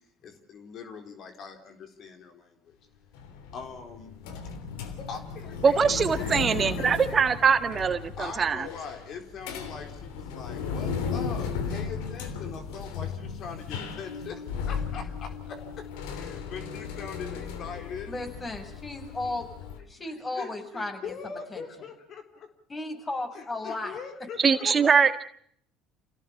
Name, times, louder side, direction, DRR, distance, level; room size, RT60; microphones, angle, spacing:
voice 1, 0.2-2.7 3.5-4.1 4.4-4.5 5.0-7.3 7.7-15.9 16.1-18.1 18.4-18.6 19.6-22.5 23.3-24.9, left 6 dB, 55° left, 6 dB, 4.2 m, -42 dB
sound 1, 3.1-19.8, left 5 dB, 85° left, 3.2 m, -36 dB
voice 2, 5.6-8.7 24.4-25.2, right 6 dB, 40° right, 10 dB, 1.7 m, -22 dB
voice 3, 18.1-19.5 19.9-21.6 22.7-24.0 24.6-24.7, left 2 dB, 25° left, 5 dB, 7.1 m, -35 dB
28.5 x 17.0 x 7.2 m, 0.64 s
supercardioid pair, 75°, 0 cm